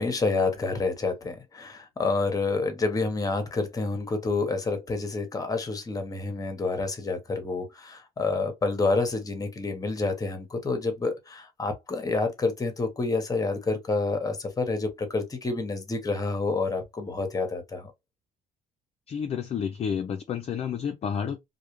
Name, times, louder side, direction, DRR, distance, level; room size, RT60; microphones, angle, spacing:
voice 1, 0.0-17.9, left 3 dB, 20° left, 0.8 m, -28 dB
voice 2, 19.1-21.4, left 7 dB, 40° left, 0.4 m, -30 dB
2.3 x 2.1 x 2.9 m
cardioid pair, 110°, 17 cm